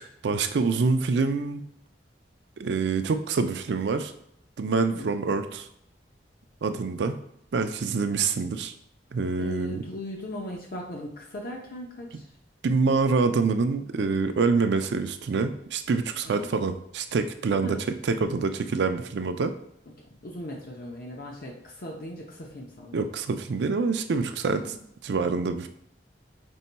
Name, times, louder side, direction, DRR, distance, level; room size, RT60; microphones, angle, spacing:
voice 1, 0.2-1.7 2.6-4.1 4.6-5.7 6.6-7.2 7.5-8.7 9.1-9.8 12.6-19.5 22.9-24.7 25.0-25.7, right 4 dB, 70° right, 9 dB, 0.4 m, -26 dB
voice 2, 9.4-12.3 16.3-16.5 17.6-17.8 20.2-23.0 24.7-24.8, left 1 dB, 55° left, -1 dB, 0.7 m, -38 dB
5.3 x 4.1 x 2.2 m, 0.72 s
head